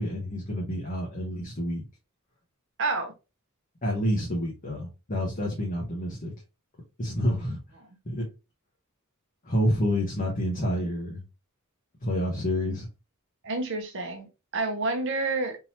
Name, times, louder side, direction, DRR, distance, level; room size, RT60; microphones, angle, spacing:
voice 1, 0.0-1.8 3.8-6.3 7.0-7.6 8.0-8.3 9.4-11.2 12.0-12.9, equal, 40° left, 1.0 m, -28 dB
voice 2, 2.8-3.1 13.4-14.3 14.5-15.6, right 3 dB, 55° right, 0.8 m, -28 dB
3.7 x 2.9 x 2.9 m
head